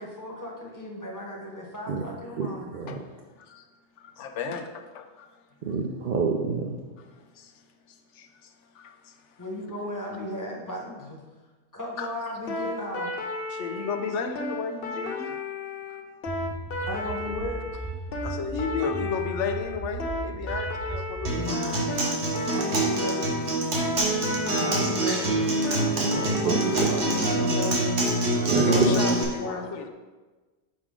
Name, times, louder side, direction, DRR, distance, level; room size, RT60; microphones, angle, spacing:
voice 1, 0.0-2.7 9.4-11.2 11.7-13.1 16.8-17.9 21.3-22.1 22.5-23.4 24.5-25.3 26.4-27.8 28.4-29.6, left 1 dB, 15° left, -2 dB, 1.1 m, -35 dB
voice 2, 2.4-3.0 5.7-6.7 26.1-26.9 28.5-28.9, right 5 dB, 55° right, 0 dB, 0.7 m, -27 dB
voice 3, 4.0-5.3 7.0-7.1 7.4-7.5 7.9-9.4 12.0-12.1 13.5-15.4 15.9-16.0 18.2-21.6 28.4-29.9, left 5 dB, 85° left, 6 dB, 1.0 m, -34 dB
sound 1, 12.5-27.3, left 3 dB, 60° left, 0.8 m, -34 dB
sound 2, 16.3-21.5, right 2 dB, 20° right, 0.6 m, -36 dB
Acoustic guitar, 21.2-29.2, right 2 dB, 70° right, 1.4 m, -25 dB
6.5 x 4.8 x 3.7 m, 1.3 s
omnidirectional pair, 1.2 m